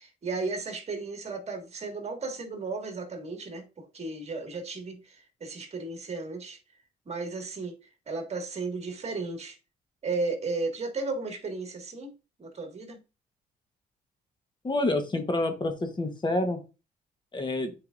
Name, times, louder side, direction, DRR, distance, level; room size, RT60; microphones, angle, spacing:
voice 1, 0.0-6.6 7.1-7.7 8.1-9.6 10.0-12.1 12.4-13.0, right 3 dB, 40° right, 1.8 m, -34 dB
voice 2, 14.6-16.6 17.3-17.7, left 2 dB, 30° left, 1.1 m, -28 dB
9.4 x 4.7 x 2.5 m
cardioid pair, 95°, 17 cm